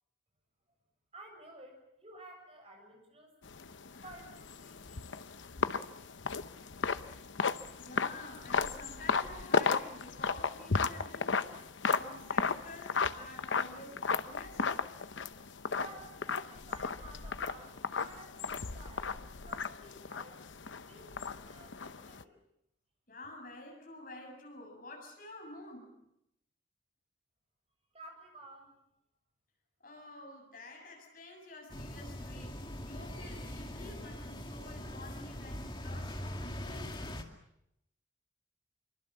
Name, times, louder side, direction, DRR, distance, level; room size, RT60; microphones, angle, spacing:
voice 1, 1.1-3.4 3.9-5.3 15.7-20.4 20.9-22.4 27.9-28.7, right 1 dB, 30° right, 3 dB, 7.2 m, -53 dB
sound 1, 3.4-22.2, left 5 dB, 80° left, 0.9 m, -35 dB
voice 2, 7.8-14.8 23.1-25.9 29.8-37.0, left 2 dB, 45° left, 2 dB, 7.1 m, -50 dB
sound 2, 31.7-37.2, left 1 dB, 25° left, 2.3 m, -42 dB
27.5 x 24.0 x 7.4 m, 0.81 s
head